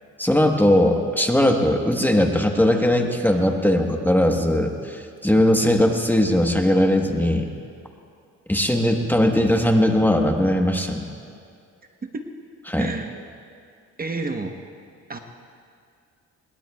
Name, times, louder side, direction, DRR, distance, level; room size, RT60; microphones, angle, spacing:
voice 1, 0.2-7.5 8.5-11.0 12.7-12.9, left 1 dB, 5° left, 3 dB, 1.2 m, -19 dB
voice 2, 12.7-13.1 14.0-14.5 15.1-15.2, right 3 dB, 30° right, 4 dB, 1.1 m, -30 dB
21.5 x 20.0 x 2.3 m, 2.3 s
cardioid pair, 90°, 30 cm